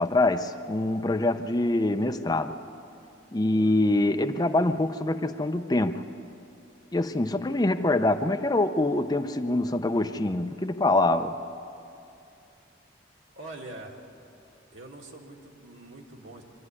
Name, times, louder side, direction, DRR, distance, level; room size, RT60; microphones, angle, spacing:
voice 1, 0.0-2.6 3.3-6.0 6.9-11.3, left 2 dB, 20° left, 8 dB, 0.6 m, -25 dB
voice 2, 13.3-14.0 14.7-16.4, right 2 dB, 85° right, 0 dB, 2.6 m, -44 dB
24.5 x 13.0 x 9.8 m, 2.7 s
head